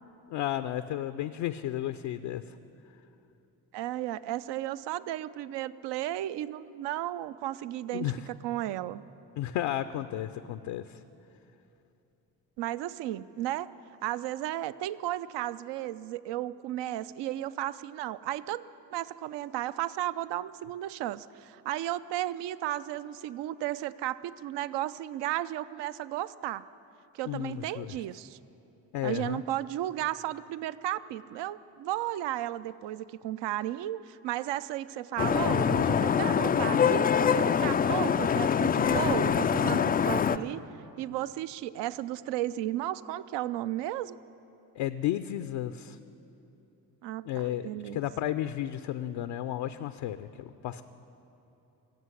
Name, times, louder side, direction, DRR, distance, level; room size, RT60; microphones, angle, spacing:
voice 1, 0.3-2.6 7.9-8.3 9.4-11.0 27.3-27.9 28.9-29.4 44.7-46.0 47.2-50.8, left 12 dB, 60° left, 11 dB, 0.6 m, -33 dB
voice 2, 3.7-9.0 12.6-13.7 14.0-18.6 18.9-26.7 27.1-28.4 29.0-40.6 41.0-44.2 47.0-47.3 47.6-48.0, right 13 dB, 60° right, 16 dB, 0.6 m, -34 dB
Vehicle horn car horn honking / Traffic noise roadway noise, 35.2-40.4, left 7 dB, 20° left, 0.3 m, -24 dB
17.0 x 7.6 x 9.7 m, 2.9 s
hypercardioid pair, 50°, 49 cm